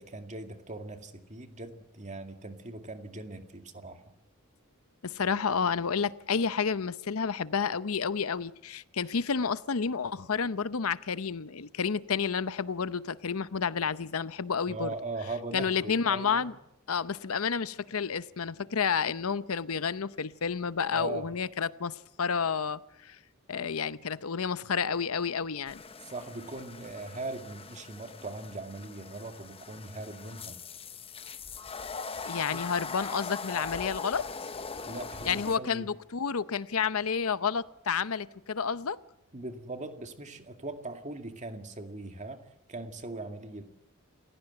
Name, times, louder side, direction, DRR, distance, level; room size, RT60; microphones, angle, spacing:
voice 1, 0.0-4.0 14.7-16.5 20.9-21.3 26.0-30.6 32.5-32.7 34.9-35.9 39.3-43.6, right 2 dB, 35° right, 2.2 m, -40 dB
voice 2, 5.0-14.9 15.5-16.5 16.9-23.2 23.5-25.8 32.2-34.3 35.2-39.0, left 6 dB, 85° left, 0.8 m, -30 dB
sound 1, 25.7-35.6, left 5 dB, 25° left, 0.9 m, -41 dB
28.5 x 15.5 x 7.9 m
head